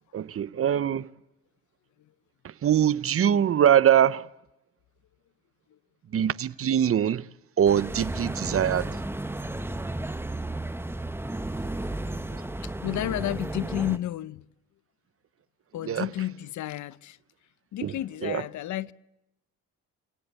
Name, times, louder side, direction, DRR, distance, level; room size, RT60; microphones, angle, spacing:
voice 1, 0.1-1.1 2.4-4.3 6.1-7.3 7.6-8.9 15.9-16.1 17.8-17.9 18.2-18.4, right 9 dB, 50° right, 0.8 m, -23 dB
sound 1, 7.7-14.0, right 2 dB, 10° right, 1.2 m, -33 dB
voice 2, 11.8-14.4 15.7-17.2 17.7-18.9, left 13 dB, 70° left, 0.8 m, -32 dB
28.0 x 18.0 x 8.2 m
cardioid pair, 90°, 30 cm